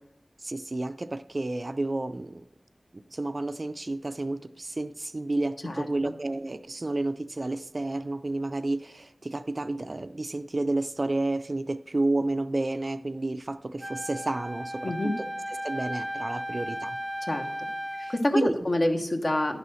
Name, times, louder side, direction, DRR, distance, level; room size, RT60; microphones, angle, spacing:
voice 1, 0.4-2.4 3.1-15.3 15.6-17.0 18.0-18.6, right 2 dB, 45° right, 0.4 m, -31 dB
voice 2, 5.6-6.1 14.8-15.1 17.3-17.7 18.1-19.6, left 1 dB, 55° left, 1.1 m, -27 dB
Wind instrument woodwind instrument, 13.8-18.3, equal, ahead, 0.6 m, -35 dB
10.5 x 4.1 x 6.3 m
wide cardioid pair, 50°, 0 cm